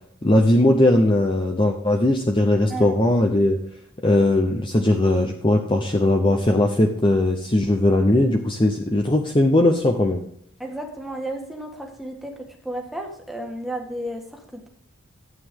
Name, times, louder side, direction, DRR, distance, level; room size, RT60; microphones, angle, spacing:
voice 1, 0.2-3.6 4.0-10.2, left 1 dB, 25° left, 3 dB, 0.8 m, -19 dB
voice 2, 2.7-3.0 10.6-14.7, right 1 dB, ahead, 0 dB, 1.7 m, -33 dB
13.0 x 8.5 x 3.7 m, 0.67 s
head